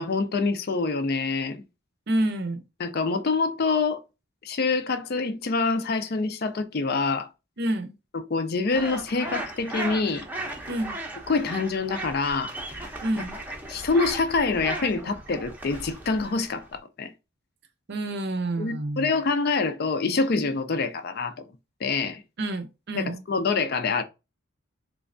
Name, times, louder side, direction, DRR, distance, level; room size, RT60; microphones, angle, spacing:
voice 1, 0.0-1.6 2.8-4.0 4.4-7.3 8.1-10.2 11.3-12.5 13.7-17.1 18.6-21.4 21.8-22.2 22.9-24.0, left 4 dB, 50° left, 0.5 m, -26 dB
voice 2, 2.1-2.6 7.6-7.9 10.7-11.0 13.0-13.4 17.9-19.1 22.4-23.2, right 1 dB, 50° right, 0.6 m, -28 dB
sound 1, 8.7-16.8, right 2 dB, 10° right, 0.6 m, -36 dB
3.4 x 3.1 x 2.5 m
head